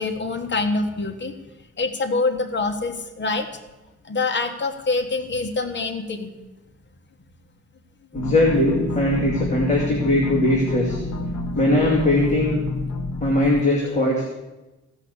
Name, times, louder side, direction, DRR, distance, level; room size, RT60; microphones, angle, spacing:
voice 1, 0.0-1.3 1.8-3.5 4.0-6.3 9.7-9.8 11.9-12.1 13.5-13.7, left 3 dB, 40° left, 5 dB, 1.3 m, -25 dB
sound 1, 8.1-13.6, left 2 dB, 85° left, 1.0 m, -28 dB
voice 2, 8.1-11.0 11.5-12.6 13.2-14.3, left 1 dB, 25° left, -3 dB, 2.5 m, -20 dB
16.0 x 5.8 x 8.1 m, 1.1 s
wide cardioid pair, 130°, 29 cm